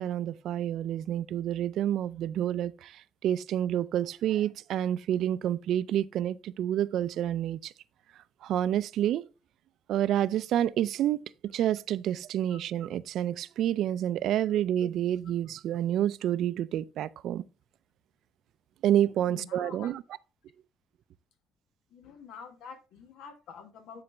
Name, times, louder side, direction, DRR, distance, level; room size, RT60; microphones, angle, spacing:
voice 1, 0.0-7.7 8.4-9.3 9.9-17.4 18.8-20.0, right 11 dB, 70° right, 0.4 m, -29 dB
voice 2, 19.3-19.9 21.9-24.0, left 6 dB, 80° left, 1.2 m, -47 dB
9.7 x 4.0 x 3.3 m
cardioid pair, 110°, 0 cm